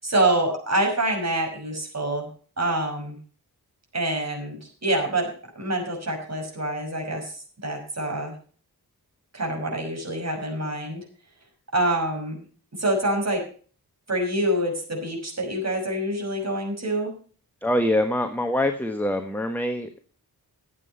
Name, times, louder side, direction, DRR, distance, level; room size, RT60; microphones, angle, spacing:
voice 1, 0.0-2.3 2.6-3.2 3.9-5.3 5.6-8.3 9.3-11.0 11.7-12.4 12.8-13.4 14.1-17.1, right 1 dB, 45° right, 1 dB, 5.8 m, -26 dB
voice 2, 17.6-20.0, left 1 dB, 5° left, 6 dB, 1.2 m, -24 dB
13.5 x 8.5 x 5.6 m, 0.41 s
wide cardioid pair, 90°, 37 cm